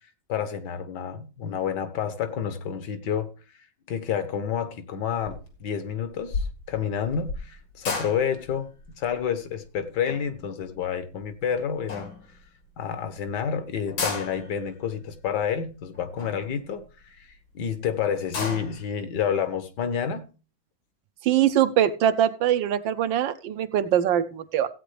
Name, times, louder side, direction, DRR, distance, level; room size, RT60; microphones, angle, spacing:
voice 1, 0.3-3.3 3.9-12.1 12.8-17.3 17.5-20.3, left 8 dB, 65° left, 1.5 m, -29 dB
sound 1, 5.2-5.6 5.9-11.4 11.9-12.6 13.1-13.2 13.4-13.5 13.8-17.4 17.8-17.9 18.1-18.9, left 4 dB, 85° left, 3.0 m, -35 dB
voice 2, 21.2-24.7, right 10 dB, 75° right, 1.4 m, -22 dB
15.5 x 8.6 x 3.3 m
omnidirectional pair, 2.1 m